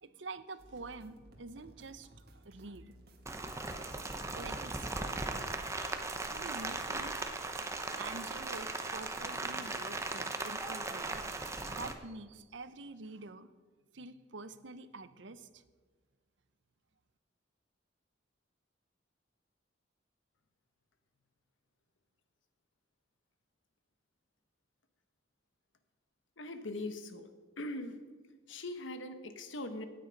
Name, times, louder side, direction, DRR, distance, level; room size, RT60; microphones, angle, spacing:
voice 1, 0.0-2.9 4.3-5.2 6.3-7.2 7.7-13.5 13.9-15.6, right 3 dB, 70° right, 13 dB, 0.8 m, -47 dB
sound 1, 0.6-6.9, equal, 50° right, 1.8 m, -57 dB
Rain, 3.3-11.9, right 2 dB, 15° right, 0.9 m, -38 dB
voice 2, 26.4-27.3 27.6-28.0 28.5-29.9, left 1 dB, 75° left, 8 dB, 1.3 m, -41 dB
17.5 x 9.3 x 5.3 m, 1.4 s
head